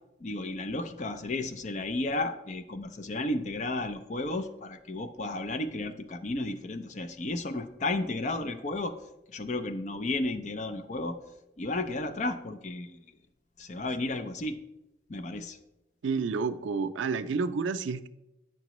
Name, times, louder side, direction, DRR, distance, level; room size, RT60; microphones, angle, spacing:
voice 1, 0.2-9.0 9.3-11.2 11.6-13.0 13.6-14.6 15.1-15.6, left 2 dB, 40° left, 9 dB, 0.4 m, -33 dB
voice 2, 16.0-18.1, right 4 dB, 85° right, 10 dB, 0.4 m, -30 dB
9.0 x 5.8 x 3.0 m, 0.94 s
head